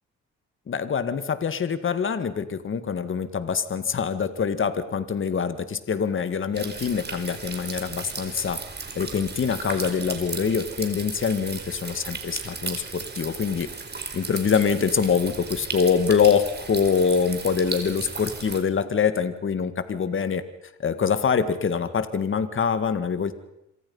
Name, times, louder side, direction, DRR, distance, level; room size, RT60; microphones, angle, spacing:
voice 1, 0.7-8.6 9.0-13.7 14.1-20.4 20.8-23.3, left 6 dB, 40° left, 11 dB, 1.9 m, -24 dB
sound 1, 6.5-18.6, right 4 dB, 35° right, 4.5 m, -36 dB
27.0 x 25.5 x 5.6 m, 0.84 s
cardioid pair, 90°, 30 cm